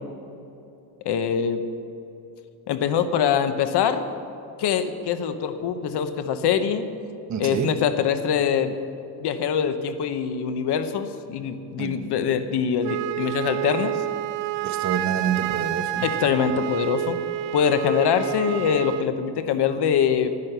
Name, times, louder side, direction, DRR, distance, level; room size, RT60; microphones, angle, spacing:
voice 1, 1.0-1.6 2.7-4.1 4.6-6.9 7.4-8.7 9.2-14.0 16.0-17.2 17.5-20.3, left 7 dB, 65° left, 10 dB, 1.0 m, -23 dB
voice 2, 7.3-7.8 11.8-12.0 14.6-16.1, right 8 dB, 40° right, 8 dB, 0.9 m, -27 dB
Wind instrument woodwind instrument, 12.8-19.1, right 14 dB, 80° right, 0.6 m, -29 dB
10.5 x 10.5 x 6.8 m, 2.8 s
cardioid pair, 140°, 43 cm